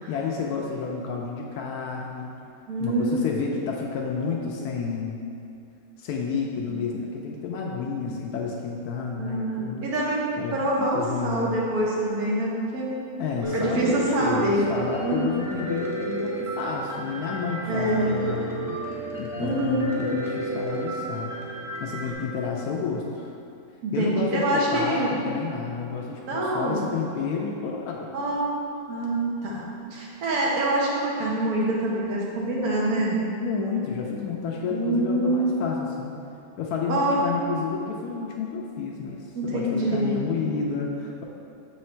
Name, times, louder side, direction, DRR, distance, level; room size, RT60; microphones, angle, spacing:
voice 1, 0.1-2.4 2.8-5.2 6.0-9.9 10.4-11.6 13.2-18.8 19.2-21.4 21.8-23.3 23.9-28.1 33.4-36.2 36.6-41.2, left 5 dB, 85° left, -1 dB, 1.1 m, -30 dB
voice 2, 2.7-3.3 6.7-6.8 7.8-7.9 9.2-10.2 10.5-11.0 11.2-12.9 13.5-14.7 15.0-15.4 17.7-18.1 19.4-20.0 23.8-25.2 26.3-26.9 28.1-28.5 28.9-29.6 29.9-33.2 34.6-35.6 36.9-37.2 39.3-40.3, right 1 dB, 85° right, -4 dB, 1.5 m, -25 dB
Piano, 13.4-22.1, right 2 dB, 20° right, 0.5 m, -32 dB
6.8 x 3.2 x 4.4 m, 2.7 s
omnidirectional pair, 1.6 m